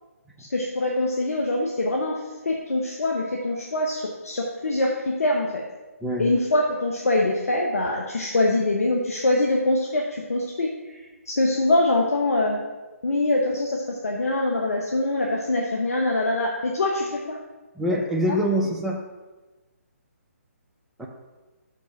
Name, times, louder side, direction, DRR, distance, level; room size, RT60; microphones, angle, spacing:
voice 1, 0.4-2.1 2.4-5.6 6.2-11.0 11.3-12.6 13.0-17.4 18.3-18.4, left 2 dB, 70° left, -1 dB, 1.1 m, -24 dB
voice 2, 17.8-19.0 21.0-21.1, equal, 5° right, -1 dB, 0.6 m, -24 dB
6.4 x 5.3 x 5.8 m, 1.2 s
figure-of-eight pair, 145°, 8 cm